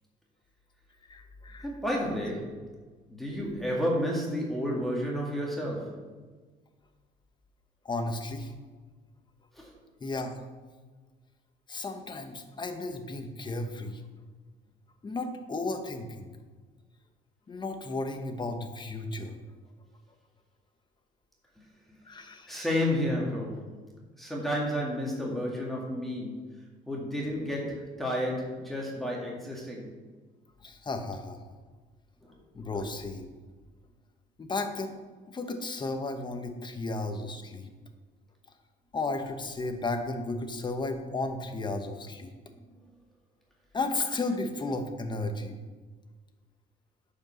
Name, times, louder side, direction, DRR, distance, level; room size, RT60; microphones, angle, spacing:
voice 1, 1.0-1.7 7.8-8.5 10.0-10.4 11.7-14.0 15.0-16.3 17.5-19.4 22.0-22.6 30.6-31.4 32.5-33.4 34.4-35.0 35.3-37.7 38.9-42.3 43.7-45.6, left 2 dB, 25° left, 6 dB, 1.2 m, -34 dB
voice 2, 1.6-2.7 3.1-6.1 9.5-9.7 21.6-22.0 22.5-23.7 24.2-26.4 26.9-29.9 42.7-42.8, equal, ahead, -4 dB, 2.1 m, -31 dB
9.3 x 5.2 x 6.4 m, 1.4 s
cardioid pair, 110°, 17 cm